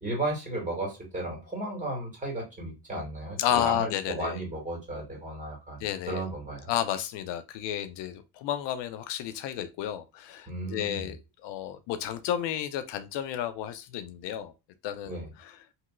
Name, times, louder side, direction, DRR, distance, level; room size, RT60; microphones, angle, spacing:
voice 1, 0.0-6.7 10.5-11.1 15.1-15.3, right 1 dB, 15° right, 2.0 m, -34 dB
voice 2, 3.4-4.4 5.8-6.2 6.7-14.5 14.8-15.6, left 11 dB, 75° left, 0.5 m, -32 dB
3.0 x 2.8 x 2.4 m
cardioid pair, 95°, 43 cm